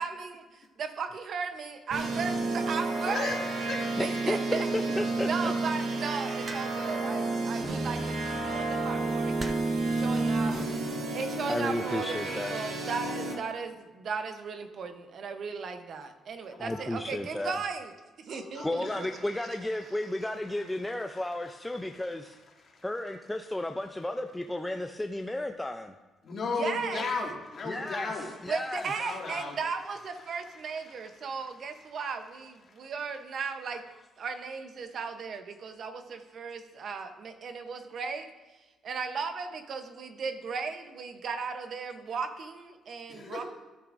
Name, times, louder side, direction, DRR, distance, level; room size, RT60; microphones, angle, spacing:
voice 1, 0.0-3.4 4.0-4.7 5.2-9.6 9.9-10.5 11.1-17.9 18.2-19.1 26.6-27.1 28.5-33.8 34.2-38.3 38.8-43.4, right 5 dB, 60° right, 8 dB, 0.8 m, -36 dB
sound 1, 1.9-13.3, right 2 dB, 75° right, 1.3 m, -31 dB
voice 2, 3.0-4.0 10.1-10.8 16.4-17.1 18.3-19.2 19.7-20.1 20.5-22.2 22.6-22.8 26.2-29.6 30.4-31.4 32.7-32.8 43.1-43.4, left 4 dB, 55° left, -2 dB, 2.1 m, -38 dB
voice 3, 4.0-5.5 11.5-12.6 16.6-17.6 18.6-22.4 22.8-26.0 27.7-28.1 28.4-28.9, left 1 dB, 10° left, 4 dB, 0.5 m, -33 dB
sound 2, 6.5-7.0 8.2-8.5 9.4-9.9 10.8-11.2, right 2 dB, 30° right, 0.6 m, -42 dB
12.5 x 6.8 x 2.6 m, 1.2 s
cardioid pair, 90°, 0 cm